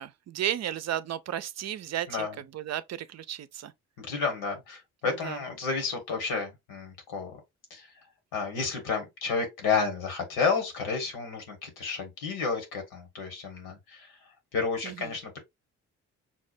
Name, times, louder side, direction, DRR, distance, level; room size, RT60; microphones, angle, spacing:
voice 1, 0.0-3.7 5.0-5.4 14.8-15.2, right 11 dB, 45° right, 0.5 m, -34 dB
voice 2, 4.0-7.4 7.7-7.9 8.3-14.1 14.5-15.4, left 5 dB, 80° left, 1.5 m, -31 dB
6.0 x 2.1 x 2.5 m
hypercardioid pair, 50°, 36 cm